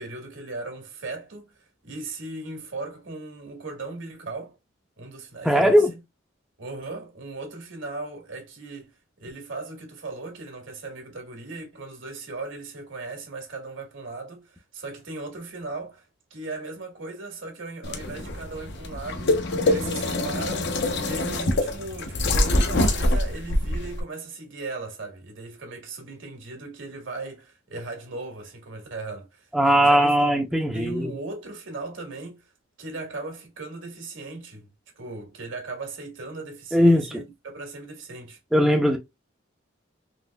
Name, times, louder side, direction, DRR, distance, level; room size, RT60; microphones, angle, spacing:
voice 1, 0.0-4.6 5.0-6.0 6.6-32.5 32.8-34.7 34.9-38.4, right 3 dB, 75° right, 1.5 m, -38 dB
voice 2, 5.4-5.9 29.5-31.1 36.7-37.1 38.5-39.0, equal, ahead, 0.5 m, -19 dB
sound 1, 17.8-24.0, left 1 dB, 60° left, 0.7 m, -25 dB
3.9 x 2.9 x 2.2 m
head